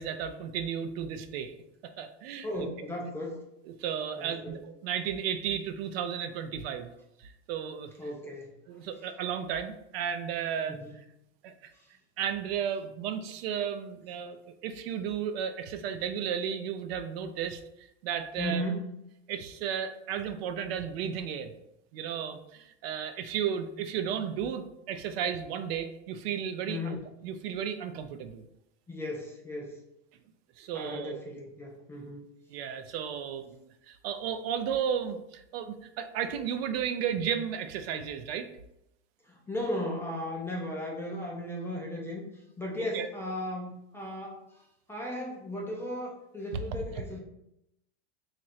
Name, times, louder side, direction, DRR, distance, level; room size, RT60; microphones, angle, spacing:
voice 1, 0.0-1.5 1.8-2.7 3.8-6.9 7.2-7.9 8.7-10.8 11.4-11.5 12.2-14.4 14.6-18.6 19.3-21.5 21.9-27.0 27.2-28.4 30.6-31.2 32.5-33.6 33.9-38.5 42.9-43.1, right 8 dB, 65° right, 9 dB, 0.5 m, -34 dB
voice 2, 2.4-3.4 4.2-4.5 8.0-8.5 10.7-10.9 11.7-11.9 18.4-18.8 26.7-27.0 28.9-29.8 30.7-32.2 39.2-44.6 44.9-47.2, left 1 dB, 10° left, -2 dB, 0.3 m, -36 dB
3.1 x 2.5 x 4.1 m, 0.82 s
supercardioid pair, 140°, 33 cm